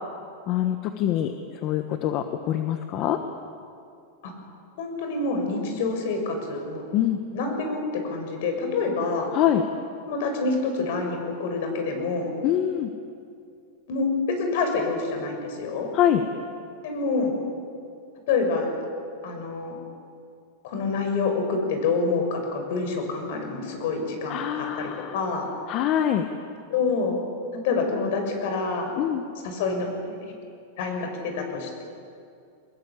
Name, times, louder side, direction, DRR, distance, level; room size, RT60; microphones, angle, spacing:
voice 1, 0.5-1.3 1.6-3.2 6.9-7.2 9.3-9.6 12.4-12.9 15.9-16.2 24.3-25.1 25.7-26.2 29.0-29.2, left 11 dB, 35° left, 7 dB, 1.3 m, -24 dB
voice 2, 4.8-6.8 7.3-9.3 10.0-12.3 13.9-15.9 16.8-17.3 18.3-18.8 19.2-19.8 20.6-25.5 26.7-27.2 27.5-28.9 29.4-30.2 30.8-31.8, left 4 dB, 60° left, 4 dB, 6.6 m, -27 dB
24.5 x 20.5 x 8.6 m, 2.4 s
supercardioid pair, 155°, 0 cm